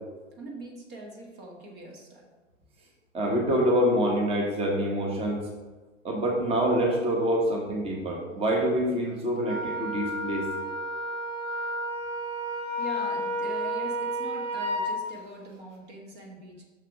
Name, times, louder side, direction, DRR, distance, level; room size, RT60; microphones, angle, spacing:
voice 1, 0.4-2.3 12.8-16.6, right 1 dB, 35° right, 0 dB, 1.5 m, -42 dB
voice 2, 3.1-5.5 6.0-10.5, equal, 15° right, -1 dB, 1.4 m, -26 dB
Wind instrument woodwind instrument, 9.4-14.9, equal, 70° right, 1.7 m, -31 dB
6.4 x 6.4 x 4.9 m, 1.2 s
figure-of-eight pair, 105°, 38 cm